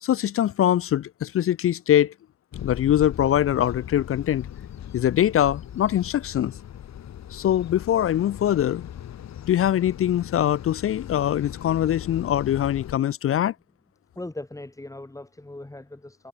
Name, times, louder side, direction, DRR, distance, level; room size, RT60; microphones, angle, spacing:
voice 1, 0.0-2.1 2.6-4.5 4.9-6.5 7.3-8.9 9.5-13.5, left 11 dB, 45° left, 0.5 m, -23 dB
sound 1, 2.5-13.0, left 10 dB, 60° left, 3.2 m, -38 dB
voice 2, 14.1-16.3, left 2 dB, 10° left, 3.2 m, -39 dB
cardioid pair, 90°, 30 cm